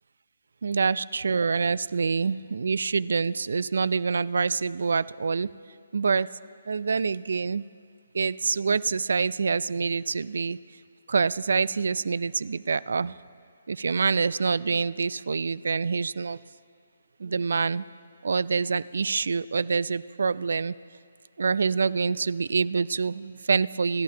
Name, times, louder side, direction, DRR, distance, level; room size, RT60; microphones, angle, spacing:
voice 1, 0.6-5.5 5.9-6.3 6.7-7.7 8.1-10.6 11.1-13.1 13.7-16.4 17.2-17.8 18.2-20.7 21.4-24.0, right 5 dB, 70° right, 19 dB, 0.3 m, -26 dB
26.5 x 11.5 x 2.8 m, 2.1 s
hypercardioid pair, 150°, 0 cm